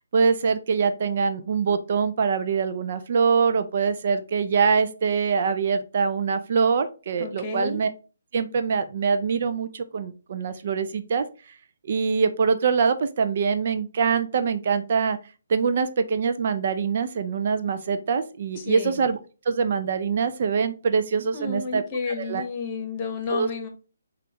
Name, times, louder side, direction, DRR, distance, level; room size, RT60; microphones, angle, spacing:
voice 1, 0.1-7.9 8.3-11.3 11.8-15.2 15.5-19.2 19.5-22.4 23.3-23.5, right 5 dB, 50° right, 10 dB, 0.4 m, -24 dB
voice 2, 7.2-7.8 18.6-19.0 21.2-23.7, left 4 dB, 30° left, 4 dB, 1.1 m, -31 dB
6.6 x 2.4 x 2.9 m, 0.34 s
figure-of-eight pair, 140°, 0 cm